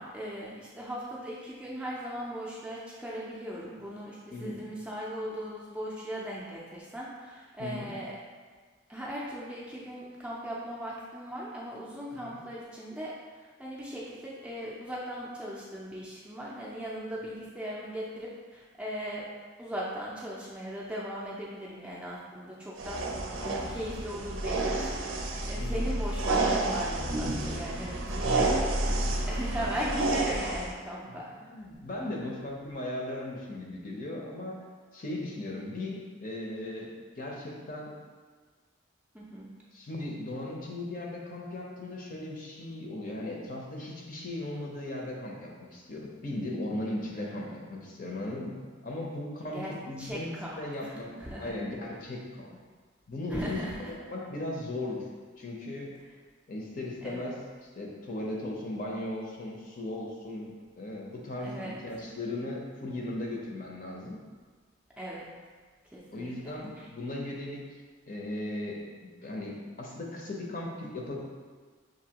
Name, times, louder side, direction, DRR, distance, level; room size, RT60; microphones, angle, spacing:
voice 1, 0.0-8.1 8.9-19.3 19.6-28.9 29.3-31.3 39.1-39.5 47.2-47.6 49.5-51.5 53.3-53.8 57.0-57.3 61.4-61.7 65.0-65.3 65.9-66.9, equal, 5° right, -6 dB, 0.5 m, -38 dB
sound 1, 22.8-30.7, right 2 dB, 80° right, 0.6 m, -30 dB
voice 2, 25.6-25.9 28.2-28.5 28.9-29.1 31.4-34.6 34.9-37.9 39.7-51.1 51.4-52.6 53.1-55.1 55.4-55.9 56.5-64.2 66.1-67.6 68.1-71.1, left 1 dB, 40° left, -2 dB, 0.6 m, -37 dB
6.0 x 2.7 x 2.8 m, 1.5 s
head